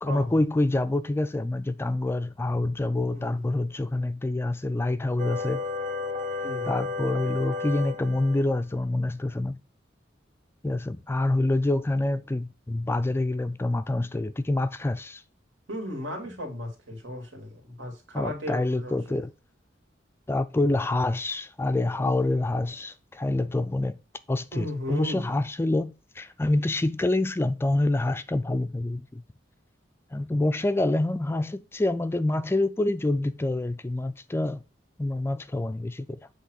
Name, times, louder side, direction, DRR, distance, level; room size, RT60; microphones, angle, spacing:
voice 1, 0.0-5.6 6.7-9.6 10.6-15.2 18.1-19.3 20.3-24.0 24.3-29.2 30.1-34.6 35.0-36.2, left 2 dB, 15° left, 0.4 m, -26 dB
voice 2, 3.1-3.6 6.4-6.7 15.7-19.2 24.5-25.3, left 1 dB, 85° right, 2.8 m, -35 dB
sound 1, 5.2-8.4, left 4 dB, 45° right, 1.0 m, -32 dB
8.1 x 3.4 x 6.4 m
head